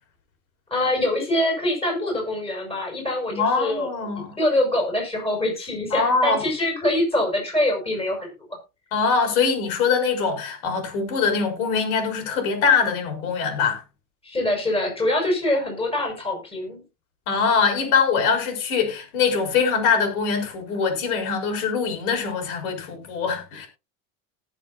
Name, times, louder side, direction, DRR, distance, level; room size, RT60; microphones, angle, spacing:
voice 1, 0.7-3.9 4.3-8.3 14.2-16.8, left 1 dB, 15° left, 6.7 m, -24 dB
voice 2, 3.3-4.4 5.9-6.4 8.9-13.8 17.3-23.7, left 5 dB, 70° left, 6.4 m, -23 dB
19.0 x 7.5 x 2.7 m
supercardioid pair, 140°, 44 cm